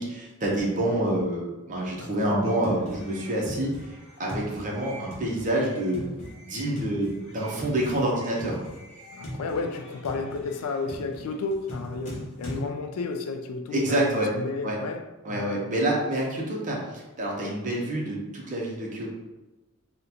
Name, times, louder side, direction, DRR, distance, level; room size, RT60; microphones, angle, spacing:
voice 1, 0.0-3.7 4.2-6.0 6.4-8.6 13.7-14.3 14.6-14.8 15.2-19.1, right 1 dB, 35° right, 0.6 m, -27 dB
voice 2, 2.0-2.5 9.1-15.7, left 3 dB, 75° left, 0.3 m, -32 dB
sound 1, 2.4-12.6, equal, 35° left, 0.9 m, -41 dB
3.8 x 2.1 x 2.8 m
head